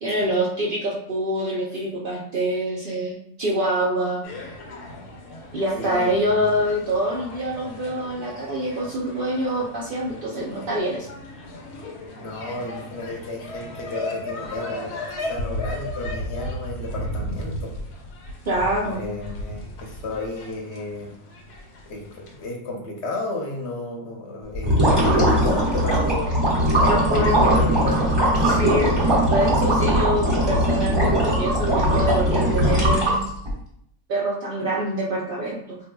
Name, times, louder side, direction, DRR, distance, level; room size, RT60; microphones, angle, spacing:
voice 1, 0.0-4.3 5.5-11.1 18.5-19.0 26.9-27.4 28.4-33.2 34.1-35.8, right 1 dB, 80° right, -4 dB, 0.4 m, -25 dB
sound 1, 4.2-22.5, left 1 dB, 90° left, 1.3 m, -35 dB
voice 2, 5.8-6.1 12.2-14.9 15.2-17.7 18.9-21.1 21.8-26.6 27.4-28.6, left 2 dB, 55° left, 0 dB, 0.9 m, -33 dB
sound 2, 24.5-33.5, equal, 20° right, 1.0 m, -20 dB
4.1 x 2.7 x 2.2 m, 0.70 s
omnidirectional pair, 1.6 m